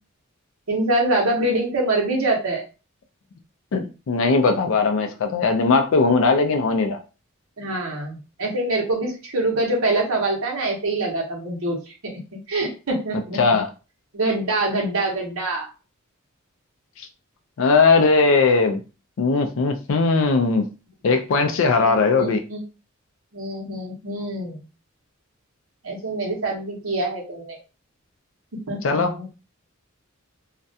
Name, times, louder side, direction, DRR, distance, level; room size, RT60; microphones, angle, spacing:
voice 1, 0.7-2.6 7.6-12.1 12.5-13.6 14.1-15.7 21.8-22.6 23.3-24.6 25.8-27.6 28.7-29.2, right 2 dB, 80° right, 0.9 m, -25 dB
voice 2, 3.7-7.0 13.4-13.7 17.6-18.8 19.2-20.7 21.0-22.4 28.8-29.2, left 4 dB, 65° left, 0.4 m, -19 dB
2.3 x 2.1 x 2.6 m
head